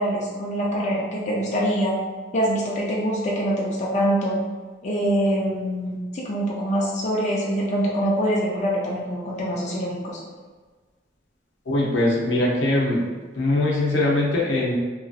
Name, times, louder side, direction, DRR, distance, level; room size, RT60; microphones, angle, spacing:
voice 1, 0.0-1.9 2.3-4.4 4.8-10.2, equal, 40° left, -4 dB, 0.4 m, -24 dB
voice 2, 11.7-13.0 13.3-14.7, left 1 dB, 85° left, -4 dB, 0.7 m, -21 dB
2.9 x 2.6 x 2.4 m, 1.4 s
head